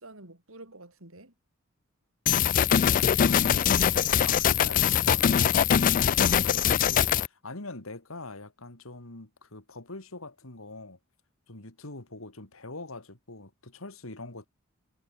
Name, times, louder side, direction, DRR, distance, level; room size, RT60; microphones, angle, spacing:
voice 1, 0.0-1.3 3.3-4.1, right 2 dB, 80° right, 5.9 m, -48 dB
sound 1, 2.3-7.3, left 9 dB, 40° left, 0.3 m, -22 dB
voice 2, 3.2-3.6 4.2-11.0 11.5-14.5, left 2 dB, 85° left, 3.1 m, -43 dB
head